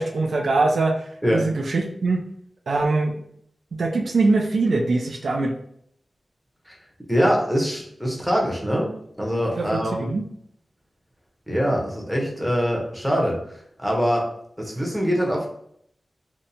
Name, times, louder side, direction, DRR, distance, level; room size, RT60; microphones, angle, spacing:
voice 1, 0.0-2.2 2.7-3.2 3.8-5.5 9.6-10.2, right 3 dB, 85° right, 2 dB, 0.3 m, -22 dB
voice 2, 7.1-8.9 9.2-10.1 11.5-13.4 13.8-14.2 14.6-15.5, equal, ahead, -2 dB, 0.8 m, -23 dB
2.6 x 2.2 x 2.7 m, 0.69 s
wide cardioid pair, 60°, 0 cm